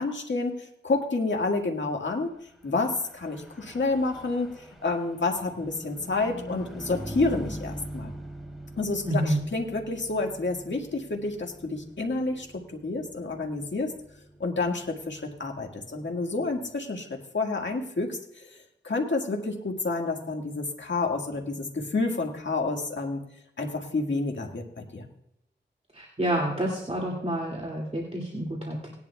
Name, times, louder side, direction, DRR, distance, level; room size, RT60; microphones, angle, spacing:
voice 1, 0.0-2.3 2.6-8.1 8.8-13.9 14.4-23.2 23.6-25.1, left 3 dB, 70° left, 1 dB, 1.8 m, -29 dB
Car passing by / Truck, 2.8-16.5, equal, ahead, 3.0 m, -43 dB
voice 2, 9.0-9.4 25.9-28.9, right 1 dB, 35° right, -3 dB, 2.3 m, -28 dB
18.5 x 10.5 x 2.3 m, 0.78 s
cardioid pair, 40°, 20 cm